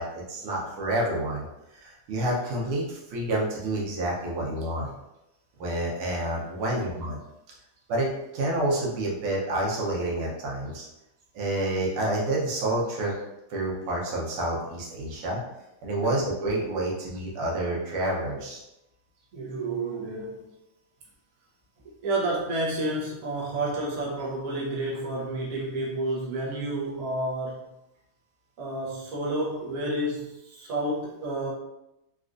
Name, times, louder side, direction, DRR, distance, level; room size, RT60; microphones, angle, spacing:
voice 1, 0.0-1.4 1.7-4.9 5.6-7.2 7.9-8.1 8.3-10.9 11.3-13.1 13.5-15.4 15.8-18.6, right 1 dB, 85° right, -3 dB, 1.7 m, -28 dB
voice 2, 19.3-20.4 22.0-27.6 28.6-31.5, right 2 dB, 55° right, -4 dB, 1.0 m, -30 dB
4.1 x 2.4 x 2.5 m, 0.90 s
omnidirectional pair, 2.3 m